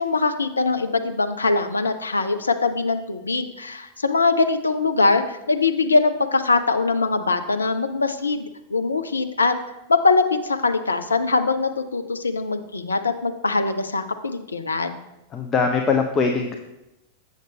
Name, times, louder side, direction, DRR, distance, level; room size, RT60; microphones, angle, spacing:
voice 1, 0.0-9.5 9.9-15.0, left 3 dB, 75° left, 8 dB, 0.5 m, -22 dB
voice 2, 15.3-16.6, left 5 dB, 25° left, 4 dB, 0.6 m, -21 dB
7.8 x 6.5 x 3.4 m, 0.94 s
figure-of-eight pair, 90°, 0 cm